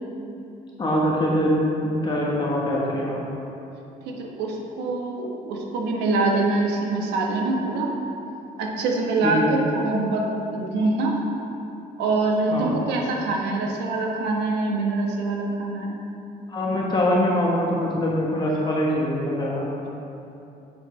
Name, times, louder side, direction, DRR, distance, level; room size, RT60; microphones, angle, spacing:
voice 1, 0.8-1.5 1.8-3.2 9.2-9.5 12.5-12.7 16.5-19.7, left 1 dB, 25° left, -5 dB, 1.1 m, -23 dB
voice 2, 4.1-7.9 8.6-11.2 12.0-16.0, right 2 dB, 85° right, 0 dB, 1.1 m, -24 dB
8.9 x 6.5 x 3.2 m, 2.8 s
cardioid pair, 110°, 17 cm